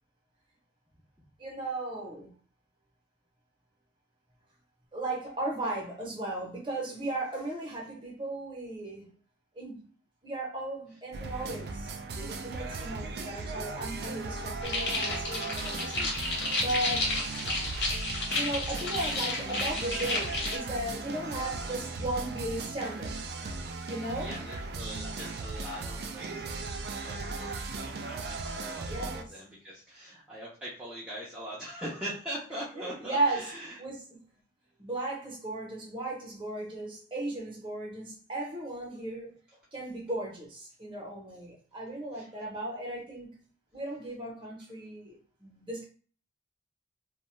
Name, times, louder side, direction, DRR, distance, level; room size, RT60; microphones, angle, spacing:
voice 1, 1.4-2.3 4.9-9.1 9.5-9.9 10.2-11.9 12.2-17.1 18.2-23.3 23.9-24.3 28.9-29.3 32.8-33.5 33.8-34.2 34.8-39.3 39.7-43.4 43.7-45.8, right 2 dB, 25° right, 0.8 m, -36 dB
sound 1, 11.1-29.2, right 3 dB, 60° right, 0.3 m, -37 dB
Crujido Papel, 14.6-20.6, left 2 dB, 65° left, 0.8 m, -32 dB
voice 2, 24.1-26.5 27.0-33.8 42.1-42.3, right 1 dB, 5° right, 0.5 m, -41 dB
2.5 x 2.3 x 3.1 m
head